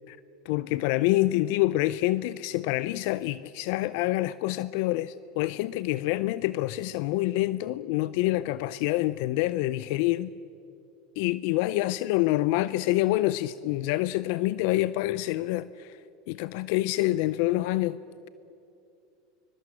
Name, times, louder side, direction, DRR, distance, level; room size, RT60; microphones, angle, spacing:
voice 1, 0.5-10.3 11.2-16.0 16.3-18.0, left 17 dB, 65° left, 0.5 m, -27 dB
23.0 x 23.0 x 7.8 m
hypercardioid pair, 100°, 0 cm